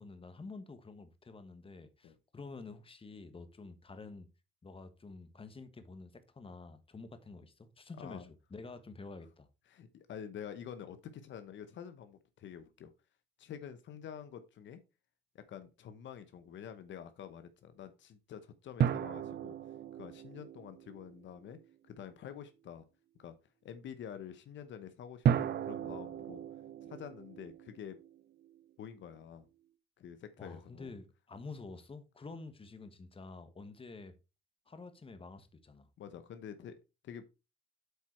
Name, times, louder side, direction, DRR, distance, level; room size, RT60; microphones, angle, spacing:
voice 1, 0.0-4.3 4.6-9.5 30.4-34.1 34.7-35.9, left 3 dB, 25° left, 1.3 m, -49 dB
voice 2, 8.0-8.3 9.7-12.9 13.4-14.8 15.3-19.6 19.9-21.6 21.8-22.8 23.2-23.3 23.6-26.4 26.8-28.0 28.8-29.5 30.0-30.9 36.0-36.8 37.0-37.2, left 8 dB, 70° left, 0.9 m, -48 dB
sound 1, 18.8-21.6 25.3-28.6, right 9 dB, 55° right, 0.7 m, -35 dB
8.1 x 4.5 x 4.4 m
cardioid pair, 90°, 20 cm